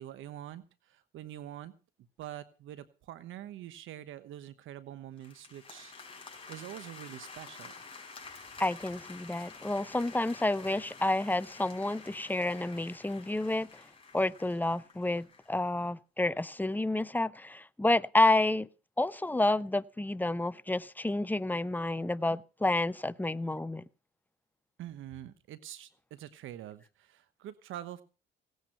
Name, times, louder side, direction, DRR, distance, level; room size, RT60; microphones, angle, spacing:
voice 1, 0.0-1.7 2.2-5.9 6.5-7.7 24.8-28.0, right 12 dB, 85° right, 1.1 m, -45 dB
sound 1, 5.2-15.5, left 4 dB, 25° left, 5.2 m, -50 dB
voice 2, 8.6-13.7 14.1-18.7 19.0-23.9, left 2 dB, 10° left, 0.6 m, -29 dB
17.5 x 9.5 x 5.8 m
cardioid pair, 90°, 20 cm